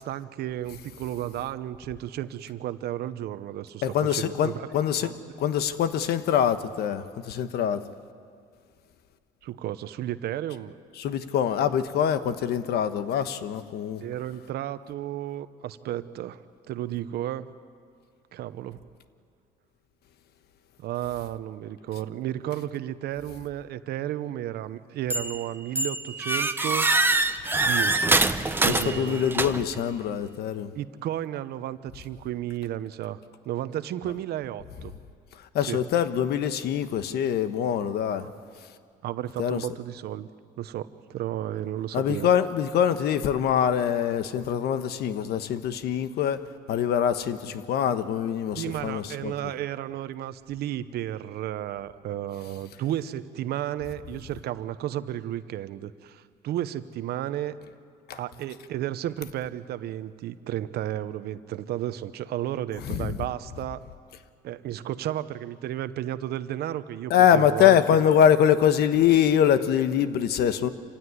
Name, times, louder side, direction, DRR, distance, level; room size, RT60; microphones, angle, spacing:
voice 1, 0.0-3.8 4.1-4.6 5.0-5.2 9.4-10.8 14.0-16.4 16.7-17.5 18.3-18.8 20.8-26.9 27.6-28.2 28.6-29.2 30.7-34.9 35.7-35.8 38.2-38.3 39.0-40.3 40.6-42.3 48.6-57.5 58.1-63.8 64.4-67.8, right 12 dB, 70° right, 13 dB, 0.9 m, -33 dB
voice 2, 3.8-5.1 5.4-7.8 11.0-14.0 28.7-30.7 35.5-38.3 39.4-39.7 41.9-46.4 46.7-49.3 58.1-58.2 62.8-63.1 67.1-70.7, left 9 dB, 70° left, 11 dB, 1.2 m, -24 dB
sound 1, 25.1-25.4 25.8-29.8, right 2 dB, 10° right, 0.9 m, -24 dB
27.0 x 16.0 x 9.6 m, 2.2 s
cardioid pair, 110°, 17 cm